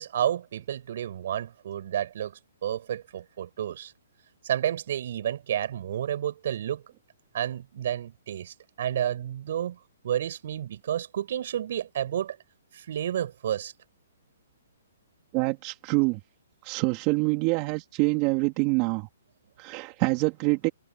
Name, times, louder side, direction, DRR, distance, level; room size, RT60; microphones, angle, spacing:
voice 1, 0.0-2.3 2.6-3.9 4.4-6.8 7.3-9.8 10.0-12.4 12.9-13.7, right 10 dB, 55° right, 8.0 m, -30 dB
voice 2, 15.3-16.2 16.6-19.1 19.6-20.7, right 26 dB, 30° right, 3.5 m, -25 dB
hypercardioid pair, 150°, 0 cm